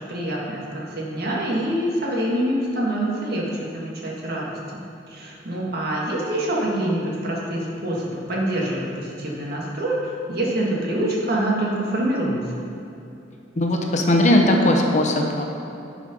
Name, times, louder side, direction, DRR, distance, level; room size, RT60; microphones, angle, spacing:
voice 1, 0.1-4.8 5.1-12.6, right 1 dB, 55° right, -4 dB, 1.7 m, -25 dB
voice 2, 13.6-15.4, left 1 dB, 40° left, 1 dB, 0.8 m, -18 dB
9.4 x 5.1 x 5.3 m, 2.8 s
head